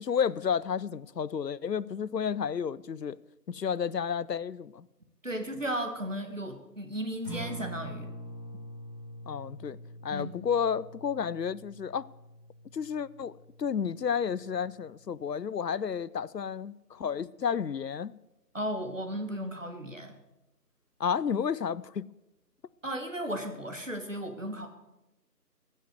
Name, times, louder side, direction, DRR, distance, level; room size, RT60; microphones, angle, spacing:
voice 1, 0.0-3.2 3.5-4.9 9.3-9.8 10.0-12.1 12.7-13.3 13.6-18.2 21.0-22.1, left 7 dB, 75° left, 0.6 m, -31 dB
voice 2, 5.2-8.1 10.1-10.5 18.5-20.1 22.8-24.7, equal, 50° right, 1.6 m, -35 dB
Acoustic guitar, 7.1-15.3, equal, 5° right, 4.1 m, -45 dB
15.5 x 6.4 x 8.0 m
figure-of-eight pair, 175°, 49 cm